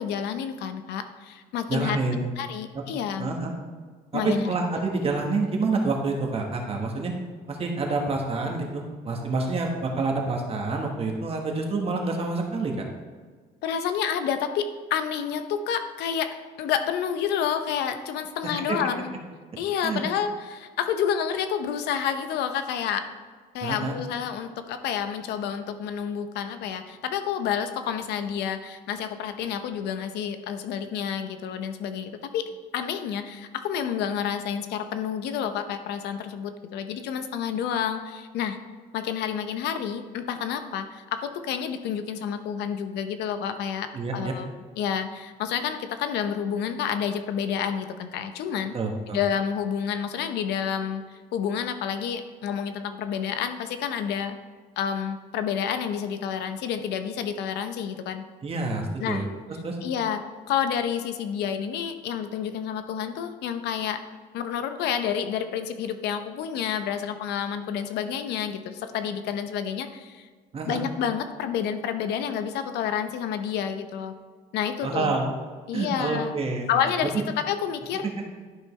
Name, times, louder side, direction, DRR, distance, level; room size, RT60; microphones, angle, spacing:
voice 1, 0.0-2.0 2.4-3.3 4.1-4.5 13.6-19.1 19.6-23.0 23.5-38.6 38.9-44.5 44.8-48.7 49.1-54.4 54.8-58.2 59.0-59.2 59.8-60.2 60.5-64.0 64.3-70.3 70.7-74.1 74.5-75.1 75.7-76.3 76.7-78.3, left 8 dB, 80° left, 9 dB, 0.7 m, -29 dB
voice 2, 1.7-2.3 3.2-3.5 4.1-7.1 7.5-12.8 18.7-18.8 19.8-20.0 23.6-23.9 43.9-44.3 48.7-49.2 58.4-59.2 59.6-59.8 70.5-70.8 74.8-75.3 75.7-76.7, right 3 dB, 35° right, 1 dB, 1.4 m, -27 dB
11.5 x 5.3 x 3.3 m, 1.5 s
cardioid pair, 110°, 17 cm